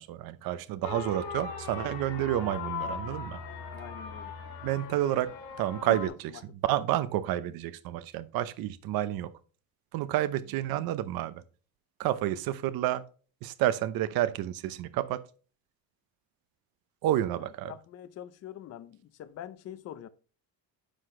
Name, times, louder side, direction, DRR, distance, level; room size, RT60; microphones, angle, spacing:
voice 1, 0.0-3.4 4.6-5.3 5.6-6.1 6.6-9.3 9.9-11.4 12.0-13.0 13.4-15.2 17.0-17.7, right 13 dB, 60° right, 0.8 m, -29 dB
sound 1, 0.8-6.1, left 5 dB, 55° left, 2.9 m, -39 dB
voice 2, 3.7-4.4 5.9-6.4 17.4-20.1, left 10 dB, 40° left, 0.6 m, -44 dB
10.0 x 5.9 x 3.2 m
cardioid pair, 170°, 41 cm